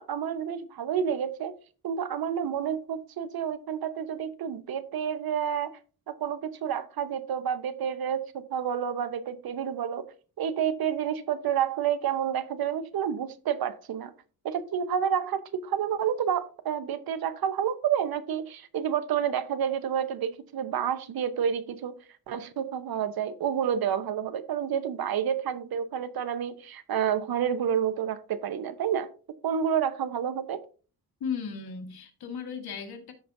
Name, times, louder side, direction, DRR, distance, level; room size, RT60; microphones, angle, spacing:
voice 1, 0.0-1.5 1.8-5.7 6.1-10.0 10.4-14.1 14.4-21.9 22.3-29.1 29.4-30.6, right 8 dB, 70° right, 0.8 m, -29 dB
voice 2, 31.2-33.1, left 6 dB, 75° left, 1.6 m, -35 dB
14.0 x 4.9 x 2.6 m
wide cardioid pair, 145°, 38 cm